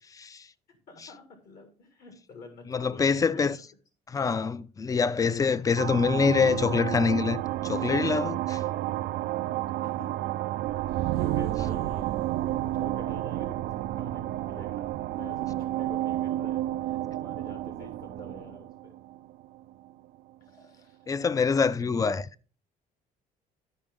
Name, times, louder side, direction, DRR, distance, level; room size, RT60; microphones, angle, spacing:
voice 1, 0.2-0.5 2.7-3.6 4.1-8.6 21.1-22.2, left 5 dB, 20° left, 0.3 m, -25 dB
voice 2, 0.7-3.6 8.4-9.0 9.8-10.1 10.9-12.1 12.7-18.9 20.5-21.0 21.4-22.2, left 4 dB, 65° left, 1.8 m, -48 dB
sound 1, 5.8-19.9, right 14 dB, 75° right, 0.4 m, -31 dB
11.5 x 5.1 x 3.5 m
cardioid pair, 110°, 17 cm